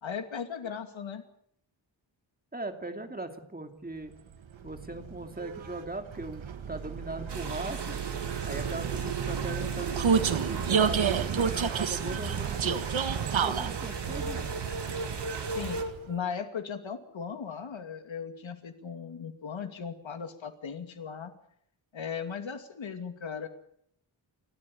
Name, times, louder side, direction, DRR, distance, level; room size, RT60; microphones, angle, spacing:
voice 1, 0.0-1.2 15.5-15.8 16.1-21.3 21.9-23.5, left 6 dB, 75° left, 7 dB, 2.7 m, -37 dB
voice 2, 2.5-4.1 4.6-8.0 8.4-12.9 13.4-14.5, right 2 dB, 20° right, 6 dB, 2.7 m, -39 dB
Vehicle, 4.3-16.2, right 6 dB, 85° right, 1.6 m, -30 dB
sound 1, 7.3-15.8, right 5 dB, 60° right, 3.1 m, -40 dB
29.5 x 13.5 x 8.7 m, 0.67 s
wide cardioid pair, 135°, 46 cm